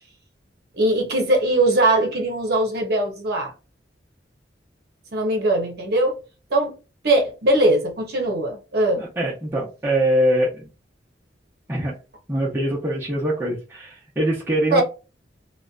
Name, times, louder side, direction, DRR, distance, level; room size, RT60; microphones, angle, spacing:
voice 1, 0.8-3.5 5.1-6.1 6.5-6.7 7.0-9.0 14.7-14.8, right 1 dB, 55° right, 0.8 m, -20 dB
voice 2, 9.0-10.7 11.7-11.9 12.3-14.8, right 1 dB, 15° right, 0.6 m, -23 dB
2.4 x 2.1 x 2.4 m
head